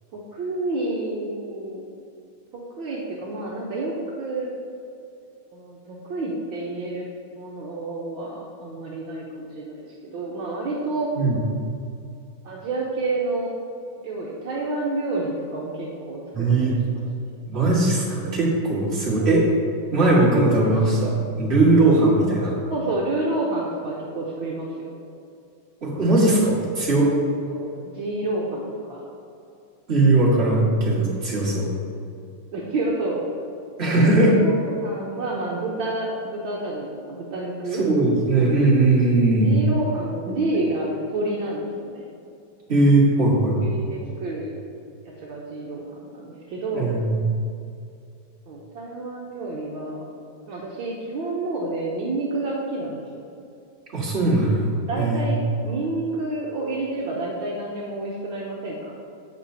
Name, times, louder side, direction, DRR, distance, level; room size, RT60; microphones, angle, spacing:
voice 1, 0.1-1.8 2.5-4.5 5.5-7.1 7.4-11.1 12.5-13.5 14.0-17.0 19.2-19.3 22.7-24.7 27.5-29.1 32.5-33.2 33.8-37.8 39.2-42.1 43.6-44.5 45.2-46.9 48.5-50.1 50.5-53.2 54.9-55.4 55.6-58.8, right 2 dB, 70° right, -4 dB, 1.6 m, -29 dB
voice 2, 16.3-16.8 17.5-19.4 19.9-22.6 25.8-27.1 29.9-31.7 33.8-34.3 37.7-39.6 42.7-43.8 46.7-47.2 53.9-55.3, right 2 dB, 30° right, -6 dB, 2.1 m, -19 dB
15.5 x 5.3 x 2.8 m, 2.6 s
omnidirectional pair, 2.4 m